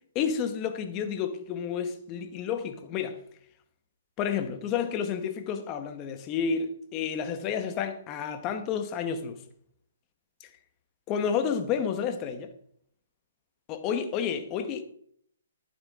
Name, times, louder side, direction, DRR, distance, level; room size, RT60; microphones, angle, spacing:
voice 1, 0.1-3.2 4.2-9.4 11.1-12.5 13.7-14.8, left 7 dB, 25° left, 1.2 m, -30 dB
11.5 x 9.6 x 3.7 m
hypercardioid pair, 145°, 0 cm